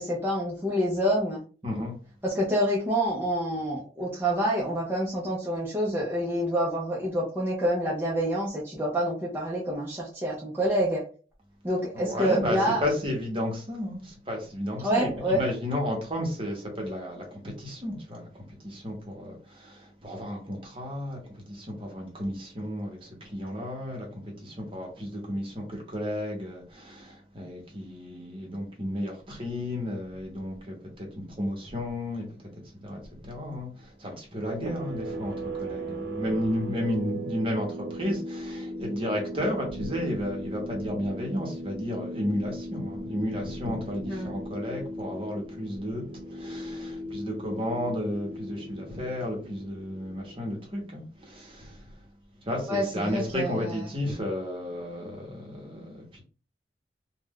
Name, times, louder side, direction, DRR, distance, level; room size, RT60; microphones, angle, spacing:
voice 1, 0.0-1.4 2.2-11.0 11.6-12.8 14.8-15.4 44.1-44.3 52.7-53.8, equal, 15° right, 0.5 m, -27 dB
voice 2, 1.6-2.0 11.9-32.2 32.8-52.0 52.4-56.2, left 1 dB, 30° right, 1.0 m, -33 dB
sound 1, 34.5-50.8, right 1 dB, 60° right, 0.7 m, -37 dB
2.4 x 2.2 x 3.6 m
head